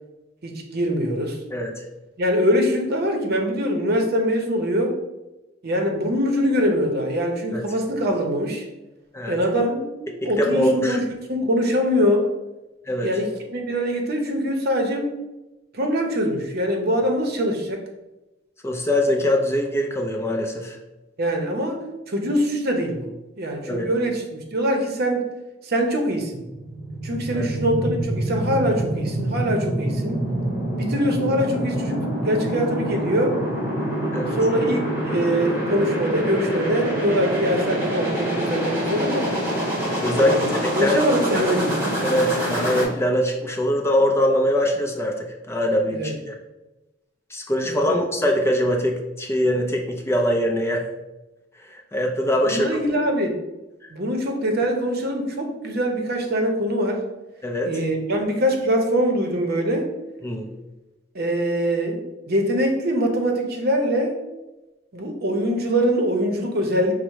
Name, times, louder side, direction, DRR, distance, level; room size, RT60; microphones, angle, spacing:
voice 1, 0.4-1.4 2.2-5.0 5.6-8.7 9.3-11.0 11.3-12.3 13.0-15.2 15.7-17.9 21.2-21.8 22.1-23.1 23.4-25.3 25.6-26.5 27.0-30.2 30.8-33.4 34.3-39.3 40.1-41.9 45.9-46.1 47.6-48.0 52.5-53.3 53.9-57.0 57.6-59.9 61.1-64.2 64.9-66.9, equal, 55° right, 3 dB, 0.7 m, -23 dB
voice 2, 1.5-1.9 7.5-7.6 9.1-9.4 10.2-11.0 12.9-13.1 18.6-20.8 23.7-23.9 27.3-27.5 34.1-34.4 40.0-40.5 40.8-41.0 42.0-46.4 47.3-50.9 51.6-52.7 53.8-53.9 57.4-57.7 60.2-60.5, equal, 15° left, 1 dB, 0.4 m, -23 dB
sound 1, 26.3-42.8, right 1 dB, 15° right, 1.5 m, -26 dB
5.4 x 2.1 x 4.6 m, 1.0 s
head